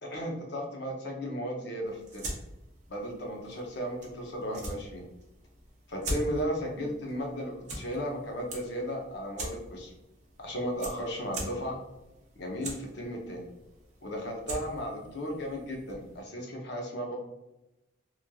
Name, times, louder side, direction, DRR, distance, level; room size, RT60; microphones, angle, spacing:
voice 1, 0.0-2.3 2.9-5.0 5.9-9.9 10.4-11.8 12.4-13.4 14.0-17.2, equal, 60° left, 0 dB, 0.6 m, -35 dB
sound 1, 1.8-16.2, right 1 dB, 35° right, 0.6 m, -43 dB
3.0 x 2.4 x 2.2 m, 0.95 s
head